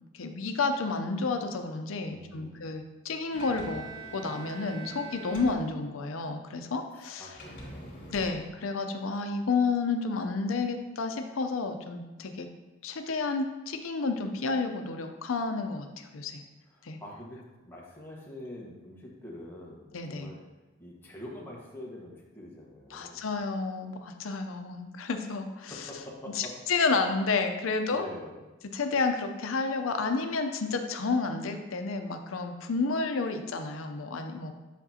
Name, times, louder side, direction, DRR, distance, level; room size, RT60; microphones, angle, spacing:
voice 1, 0.1-3.9 4.1-7.3 8.1-12.5 12.8-16.4 16.8-17.0 19.9-20.3 22.9-25.9 26.3-28.0 28.7-34.5, left 4 dB, 90° left, 6 dB, 0.6 m, -31 dB
voice 2, 2.0-2.7 7.2-8.0 16.7-20.4 20.8-23.3 25.7-26.5 27.6-28.4, left 1 dB, 10° left, -4 dB, 1.2 m, -45 dB
Sliding door, 3.3-5.6 7.3-8.4, equal, 50° left, 2.3 m, -47 dB
Bowed string instrument, 3.3-6.0, right 5 dB, 25° left, 0.8 m, -45 dB
8.3 x 5.9 x 2.8 m, 1.1 s
head